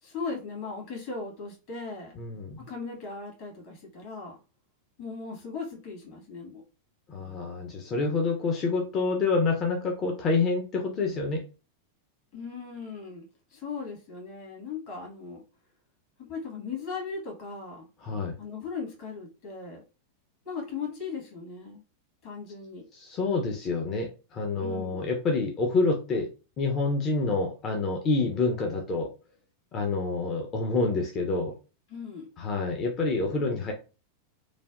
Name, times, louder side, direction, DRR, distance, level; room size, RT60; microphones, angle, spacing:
voice 1, 0.0-2.2 2.6-4.4 5.0-6.6 12.3-13.2 13.5-15.4 16.2-17.9 18.4-19.8 20.4-21.8 22.2-22.9 24.6-25.1 31.9-32.3, left 5 dB, 45° left, -1 dB, 1.5 m, -38 dB
voice 2, 2.2-2.6 7.1-11.4 18.0-18.3 22.9-26.3 26.6-29.1 29.7-31.5 32.4-33.7, left 3 dB, 30° left, 2 dB, 0.6 m, -27 dB
3.2 x 2.2 x 2.5 m, 0.33 s
figure-of-eight pair, 90°, 0 cm